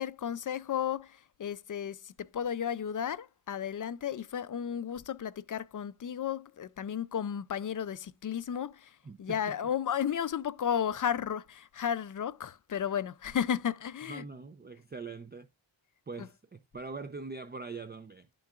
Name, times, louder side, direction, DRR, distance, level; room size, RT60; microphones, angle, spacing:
voice 1, 0.0-14.2 16.2-16.3, left 8 dB, 45° left, 0.4 m, -33 dB
voice 2, 9.0-9.4 14.1-15.5 16.1-18.3, right 4 dB, 20° right, 0.5 m, -42 dB
11.5 x 3.8 x 2.3 m
wide cardioid pair, 75°, 47 cm